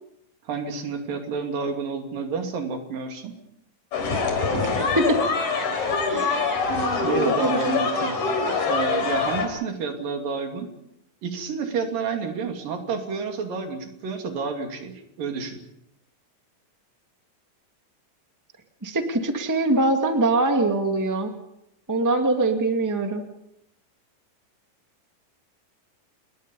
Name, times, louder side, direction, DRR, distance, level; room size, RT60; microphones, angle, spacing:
voice 1, 0.5-3.3 7.0-8.2 8.6-10.7 11.2-15.6, right 5 dB, 90° right, 4 dB, 4.5 m, -29 dB
sound 1, 3.9-9.5, left 4 dB, 65° left, 5.0 m, -24 dB
voice 2, 6.1-6.4 6.7-7.9 18.8-21.3 21.9-23.2, right 2 dB, 10° right, 4 dB, 1.3 m, -23 dB
29.5 x 21.5 x 5.5 m, 0.80 s
omnidirectional pair, 3.8 m